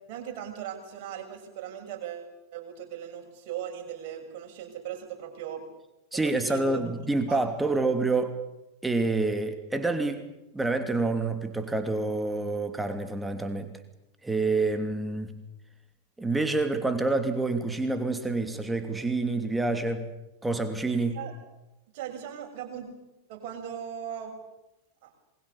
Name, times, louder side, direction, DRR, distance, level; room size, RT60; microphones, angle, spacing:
voice 1, 0.1-5.6 6.1-6.8 7.3-7.4 7.7-7.8 21.0-21.3 21.9-22.9 23.3-24.3 25.0-25.1, right 9 dB, 45° right, 2 dB, 6.9 m, -38 dB
voice 2, 6.1-8.3 8.8-10.2 10.5-13.7 14.2-15.3 16.2-20.1 20.4-21.2, right 3 dB, 10° right, 7 dB, 2.8 m, -27 dB
27.5 x 21.5 x 7.1 m, 0.94 s
figure-of-eight pair, 90°, 0 cm